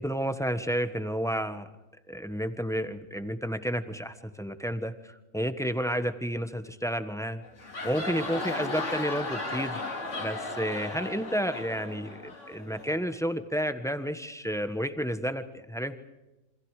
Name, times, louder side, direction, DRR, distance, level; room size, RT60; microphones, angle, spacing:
voice 1, 0.0-1.7 2.1-7.4 7.8-9.8 10.2-16.0, equal, ahead, 10 dB, 1.3 m, -31 dB
sound 1, 7.4-13.0, left 2 dB, 65° left, 3.1 m, -36 dB
28.0 x 26.0 x 5.0 m, 1.0 s
omnidirectional pair, 1.4 m